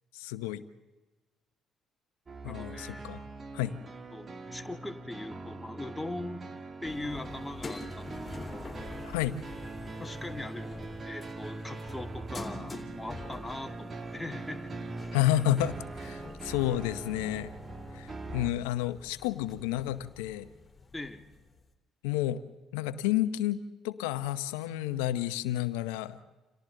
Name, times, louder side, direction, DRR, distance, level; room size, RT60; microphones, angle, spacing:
voice 1, 0.1-0.6 2.4-3.2 3.5-3.8 9.1-9.4 15.1-17.5 17.9-20.5 22.0-22.4 22.7-26.2, left 13 dB, 80° left, 13 dB, 0.9 m, -30 dB
sound 1, 2.3-18.5, right 3 dB, 35° right, 1.7 m, -42 dB
voice 2, 2.5-3.1 4.1-6.4 6.8-8.8 10.0-14.7 20.9-21.3, left 2 dB, 10° left, 4 dB, 2.2 m, -41 dB
sound 2, 6.9-21.7, left 3 dB, 30° left, 3.5 m, -47 dB
29.5 x 28.0 x 3.9 m, 1.2 s
hypercardioid pair, 50°, 0 cm